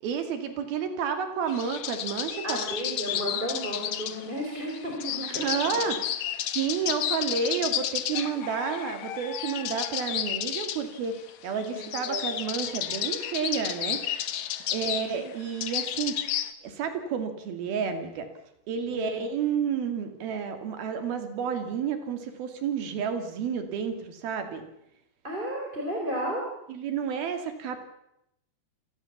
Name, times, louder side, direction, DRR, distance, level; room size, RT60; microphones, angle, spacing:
voice 1, 0.0-2.6 3.1-3.2 5.3-6.0 6.5-14.0 14.7-16.2 16.6-18.3 18.7-24.6 26.7-27.8, right 6 dB, 65° right, 7 dB, 4.2 m, -30 dB
sound 1, 1.5-16.5, left 11 dB, 65° left, 1.9 m, -32 dB
voice 2, 2.4-5.9 7.5-7.7 11.7-12.2 12.6-12.7 14.8-15.3 18.9-19.2 25.2-26.4, equal, 10° right, 0 dB, 4.0 m, -34 dB
28.5 x 19.0 x 7.3 m, 0.82 s
omnidirectional pair, 4.7 m